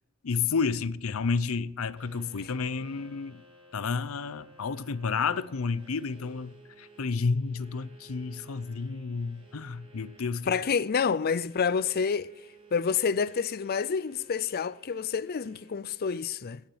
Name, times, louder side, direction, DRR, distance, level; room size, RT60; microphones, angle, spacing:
voice 1, 0.2-3.4 3.7-10.5, left 5 dB, 90° left, 0.6 m, -31 dB
sound 1, 2.0-15.7, right 3 dB, 30° right, 4.0 m, -56 dB
voice 2, 10.5-12.3 12.7-16.6, left 6 dB, 50° left, 0.5 m, -28 dB
17.5 x 7.3 x 7.9 m
head